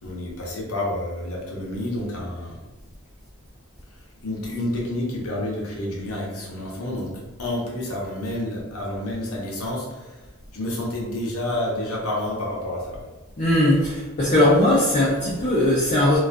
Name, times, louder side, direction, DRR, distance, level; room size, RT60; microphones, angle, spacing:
voice 1, 0.0-2.6 3.9-7.1 7.4-10.3 10.5-13.1, left 1 dB, 80° left, -3 dB, 0.7 m, -29 dB
voice 2, 13.4-16.2, left 1 dB, 30° left, -8 dB, 0.4 m, -19 dB
2.3 x 2.3 x 2.5 m, 1.2 s
head